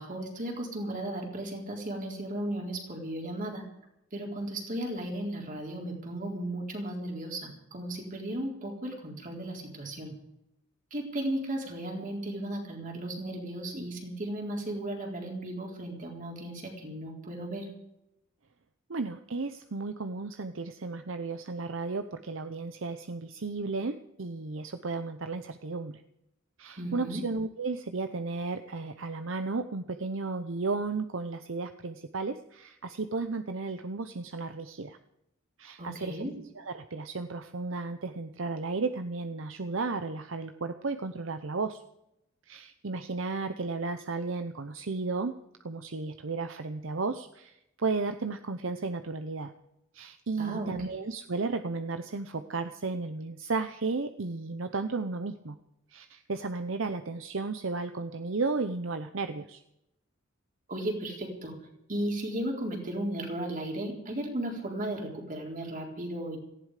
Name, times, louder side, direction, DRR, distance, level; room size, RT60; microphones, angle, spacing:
voice 1, 0.0-3.6 4.1-10.1 10.9-17.6 26.8-27.2 35.8-36.3 50.4-50.7 60.7-61.5 61.9-66.4, right 1 dB, 40° right, 1 dB, 4.1 m, -35 dB
voice 2, 18.9-26.0 26.6-35.0 35.6-36.3 36.5-41.8 42.5-45.3 45.6-49.5 49.9-55.6 55.9-59.6, right 3 dB, 70° right, 8 dB, 0.8 m, -34 dB
18.0 x 15.0 x 5.0 m, 0.83 s
head